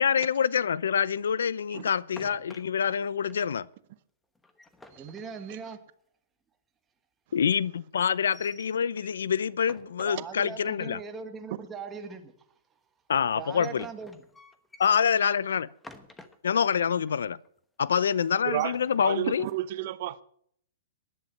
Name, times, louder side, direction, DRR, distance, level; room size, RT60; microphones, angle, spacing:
voice 1, 0.0-3.7 7.3-11.0 13.1-13.9 14.8-15.7 16.4-17.4 17.8-19.4, left 7 dB, 90° left, 0.6 m, -26 dB
sound 1, 1.6-3.0 3.3-3.4 3.7-3.8 4.3-5.9 8.1-9.2 9.6-10.7 13.2-16.7 17.1-17.2 17.4-17.8 18.4-19.6, left 2 dB, 5° left, 1.1 m, -51 dB
voice 2, 5.0-5.8 10.1-12.3 13.4-14.2, right 5 dB, 15° right, 1.7 m, -40 dB
voice 3, 18.4-18.8 19.0-20.2, right 14 dB, 50° right, 0.8 m, -31 dB
16.5 x 11.0 x 5.6 m
hypercardioid pair, 155°, 0 cm